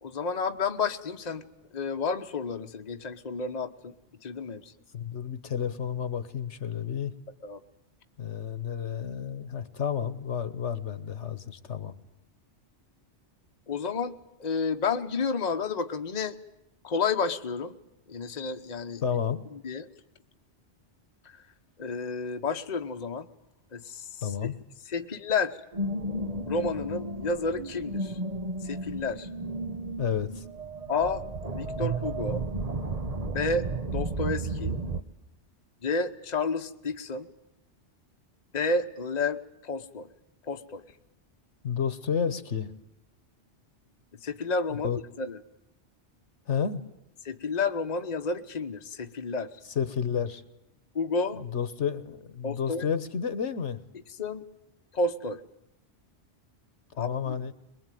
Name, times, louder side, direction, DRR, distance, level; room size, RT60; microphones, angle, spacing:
voice 1, 0.0-1.5 1.7-3.9 4.2-4.7 7.4-7.6 13.7-14.1 14.4-16.4 16.8-17.7 18.1-19.2 19.5-19.9 21.2-21.4 21.8-23.3 23.7-24.5 24.9-25.6 26.5-28.2 28.6-29.3 30.9-31.2 31.5-32.4 33.3-34.8 35.8-37.3 38.5-40.1 40.4-40.8 44.2-45.4 47.2-49.5 50.9-51.4 52.4-52.8 54.2-54.4 54.9-55.4 57.0-57.4, left 4 dB, 40° left, 6 dB, 1.1 m, -31 dB
voice 2, 4.9-7.1 8.2-11.9 19.0-19.4 24.2-24.6 30.0-30.4 41.6-42.7 44.8-45.0 46.5-46.8 49.7-50.4 51.3-53.8 57.0-57.5, left 7 dB, 70° left, 13 dB, 1.5 m, -31 dB
sound 1, 25.7-35.0, right 2 dB, 35° right, 1.2 m, -33 dB
23.0 x 21.5 x 9.2 m, 0.82 s
omnidirectional pair, 1.2 m